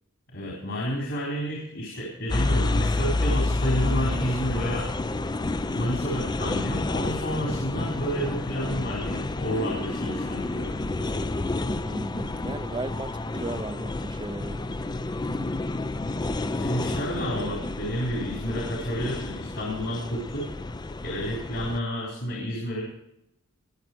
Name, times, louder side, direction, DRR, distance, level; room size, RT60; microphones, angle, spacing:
voice 1, 0.3-4.9 5.7-10.8 16.5-20.5 21.0-22.8, equal, 65° left, 4.1 m, -30 dB
sound 1, 2.3-21.8, left 2 dB, 20° left, 0.5 m, -29 dB
voice 2, 11.8-14.7, right 2 dB, 25° right, 0.6 m, -36 dB
21.5 x 7.3 x 4.6 m
head